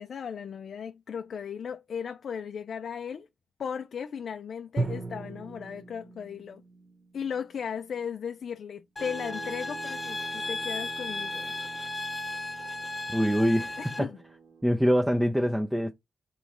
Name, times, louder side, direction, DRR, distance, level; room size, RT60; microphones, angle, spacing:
voice 1, 0.0-3.3 3.6-6.6 7.1-11.5 13.8-14.2, left 7 dB, 70° left, 0.3 m, -36 dB
Drum, 4.8-8.5, right 2 dB, 40° right, 1.1 m, -37 dB
sound 1, 9.0-14.0, left 2 dB, 35° left, 0.7 m, -35 dB
sound 2, 9.0-14.8, right 5 dB, 60° right, 1.4 m, -48 dB
voice 2, 13.1-14.1 14.6-15.9, equal, 5° right, 0.5 m, -24 dB
3.7 x 3.1 x 2.9 m
cardioid pair, 75°, 0 cm